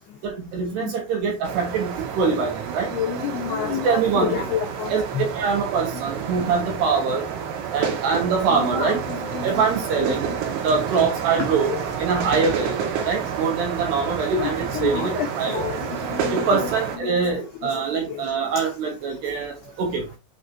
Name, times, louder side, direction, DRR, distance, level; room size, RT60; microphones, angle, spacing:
voice 1, 0.2-2.9 3.7-4.5 4.9-5.0 5.3-7.3 7.7-9.0 9.4-10.3 10.6-11.7 12.0-15.6 16.3-20.0, right 5 dB, 70° right, 2.9 m, -24 dB
sound 1, 1.4-17.0, right 7 dB, 90° right, 4.5 m, -30 dB
voice 2, 2.9-5.2 8.5-9.8 10.3-10.4 11.4-11.8 14.3-16.5 17.0-17.3 17.7-17.8 18.1-18.2, left 8 dB, 85° left, 2.2 m, -30 dB
8.8 x 4.1 x 2.6 m
omnidirectional pair, 6.0 m